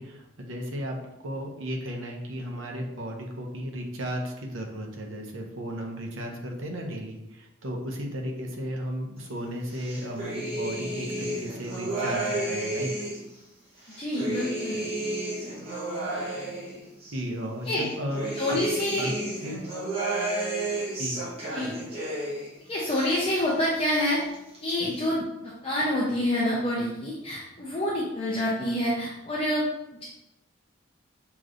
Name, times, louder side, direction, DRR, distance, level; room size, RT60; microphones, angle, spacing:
voice 1, 0.0-12.9 17.1-18.6 19.0-19.1 19.4-19.5 21.0-21.2, equal, 75° right, 1 dB, 0.9 m, -34 dB
sound 1, 9.7-13.3 13.8-17.2 17.7-22.5 22.8-23.7 23.9-24.7, right 1 dB, 30° right, 1.1 m, -32 dB
voice 2, 14.0-14.8 17.7-17.8 18.4-19.1 21.5-21.7 22.7-24.2 24.6-29.6, left 1 dB, 30° left, -6 dB, 0.7 m, -27 dB
6.4 x 3.0 x 2.5 m, 0.88 s
head